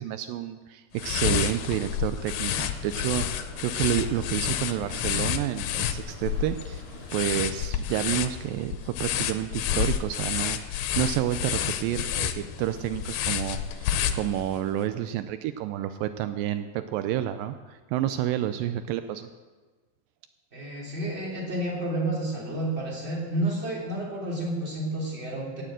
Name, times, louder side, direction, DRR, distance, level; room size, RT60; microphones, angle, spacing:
voice 1, 0.0-6.8 7.1-19.3, right 12 dB, 85° right, 10 dB, 2.2 m, -30 dB
sound 1, 1.0-14.7, left 10 dB, 80° left, 2.3 m, -30 dB
sound 2, 2.2-7.9, right 3 dB, 65° right, 3.6 m, -47 dB
voice 2, 20.5-25.6, right 1 dB, 20° right, -3 dB, 3.1 m, -30 dB
17.0 x 6.8 x 7.6 m, 1.4 s
omnidirectional pair, 4.1 m